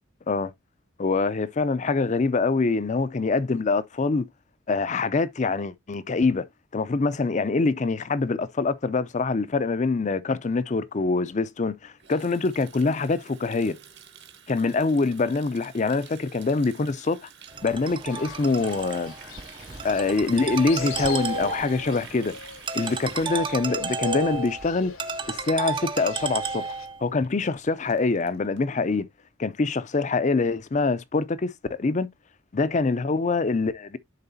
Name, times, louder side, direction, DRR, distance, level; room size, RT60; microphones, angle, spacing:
voice 1, 1.0-4.3 4.7-6.5 6.7-13.8 14.5-17.3 17.6-19.1 19.8-22.3 22.7-24.9 25.3-26.6 27.0-29.1 29.4-32.1 32.5-34.0, left 3 dB, 35° left, 0.5 m, -25 dB
Water tap faucet, 12.0-25.0 25.3-25.5 25.8-26.2 26.5-26.6 26.8-26.9 27.2-27.3 27.5-28.6, right 8 dB, 55° right, 1.3 m, -49 dB
Ringtone, 17.5-27.0, right 5 dB, 25° right, 0.5 m, -33 dB
Fowl, 18.1-26.9, left 4 dB, 75° left, 1.2 m, -39 dB
10.5 x 4.0 x 2.6 m
head